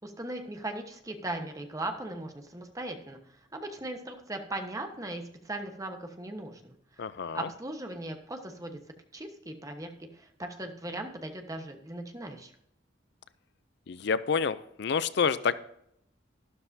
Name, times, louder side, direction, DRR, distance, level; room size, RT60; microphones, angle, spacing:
voice 1, 0.0-3.2 3.5-7.0 7.3-8.8 9.1-12.5, right 1 dB, 20° right, 5 dB, 1.2 m, -38 dB
voice 2, 7.0-7.5 13.9-15.5, left 6 dB, 60° left, 15 dB, 0.4 m, -28 dB
12.5 x 12.0 x 2.7 m, 0.74 s
head